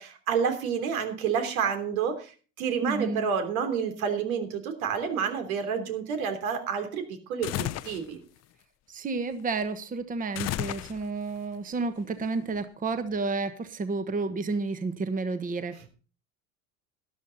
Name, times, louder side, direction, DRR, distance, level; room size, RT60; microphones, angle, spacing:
voice 1, 0.0-2.3 2.6-7.0 7.3-8.2, right 7 dB, 80° right, 6 dB, 3.4 m, -29 dB
voice 2, 2.8-3.3 8.9-15.9, right 3 dB, 20° right, 10 dB, 1.2 m, -31 dB
sound 1, 7.4-8.1 10.4-11.3, left 15 dB, 40° left, 0.7 m, -32 dB
13.0 x 11.5 x 4.1 m, 0.37 s
supercardioid pair, 105°, 41 cm